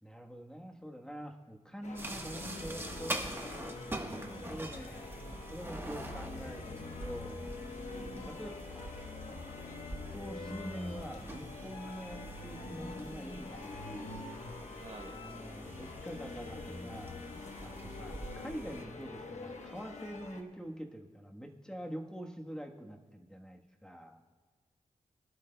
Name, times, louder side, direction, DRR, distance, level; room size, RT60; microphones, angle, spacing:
voice 1, 0.0-3.4 4.5-5.1 5.5-7.4 8.3-8.9 10.1-14.2 15.1-17.3 17.6-24.2, equal, 5° left, 1 dB, 1.3 m, -45 dB
sound 1, 1.8-20.4, left 3 dB, 65° left, 1.1 m, -45 dB
sound 2, 2.0-18.8, right 1 dB, 15° right, 1.2 m, -45 dB
voice 2, 4.0-4.7 7.9-8.4 14.7-15.2, right 3 dB, 55° right, 5 dB, 0.9 m, -51 dB
22.0 x 11.5 x 2.3 m, 1.4 s
cardioid pair, 70°, 13 cm